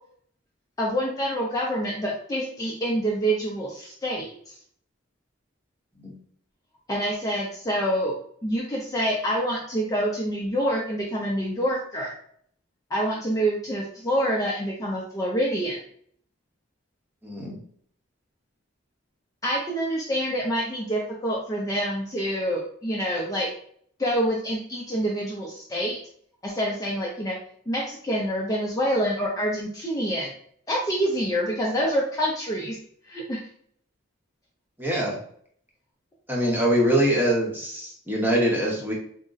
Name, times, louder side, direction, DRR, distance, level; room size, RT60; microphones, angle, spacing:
voice 1, 0.8-4.5 6.9-8.2 8.4-12.1 12.9-15.8 19.4-23.5 24.0-26.0 26.4-27.4 27.7-30.3 30.7-32.8 33.1-33.4, equal, 20° left, -3 dB, 0.5 m, -26 dB
voice 2, 17.2-17.6 34.8-35.2 36.3-38.9, right 1 dB, 10° right, -2 dB, 0.8 m, -23 dB
3.6 x 2.1 x 3.9 m, 0.62 s
head